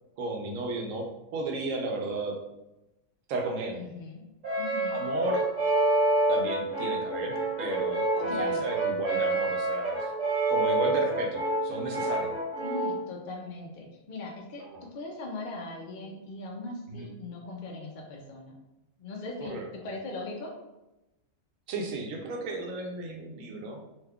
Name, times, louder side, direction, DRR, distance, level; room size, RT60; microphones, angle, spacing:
voice 1, 0.2-1.1 1.3-2.4 3.3-3.8 4.9-5.5 6.3-10.1 10.5-12.4 14.6-14.9 16.9-17.1 19.4-19.6 21.7-23.8, right 2 dB, 85° right, 1 dB, 1.0 m, -34 dB
voice 2, 3.7-4.2 4.6-5.0 8.2-8.7 12.6-14.6 14.9-18.5 19.0-20.5, left 2 dB, 50° left, -1 dB, 0.6 m, -39 dB
Brass instrument, 4.4-13.0, right 2 dB, 40° right, 1.3 m, -28 dB
2.8 x 2.3 x 3.4 m, 0.95 s
omnidirectional pair, 1.3 m